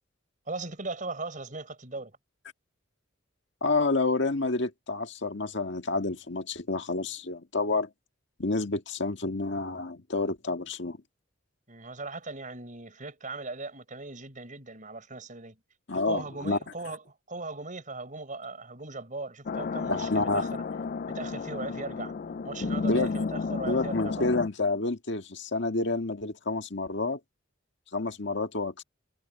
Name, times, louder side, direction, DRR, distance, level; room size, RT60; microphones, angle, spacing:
voice 1, 0.5-2.2 11.7-15.6 15.9-20.6 21.1-22.1 22.4-24.3, right 3 dB, 40° right, 6.3 m, -38 dB
voice 2, 3.6-7.9 8.4-11.0 15.9-16.6 19.9-20.5 22.9-23.1 23.7-27.2 27.9-28.8, left 3 dB, 65° left, 1.8 m, -29 dB
sound 1, 19.5-24.5, left 4 dB, 45° left, 0.4 m, -32 dB
head